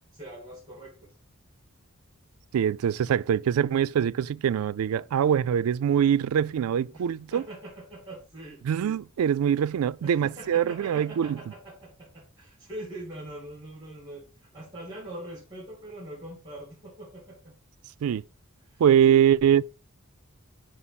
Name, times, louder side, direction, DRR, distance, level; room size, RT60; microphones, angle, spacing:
voice 1, 0.1-1.1 6.9-8.6 10.0-17.5 18.6-19.3, right 1 dB, 20° right, 2.4 m, -43 dB
voice 2, 2.5-7.4 8.6-11.4 18.0-18.2 18.8-19.6, right 9 dB, 85° right, 0.3 m, -23 dB
5.6 x 5.3 x 4.1 m
head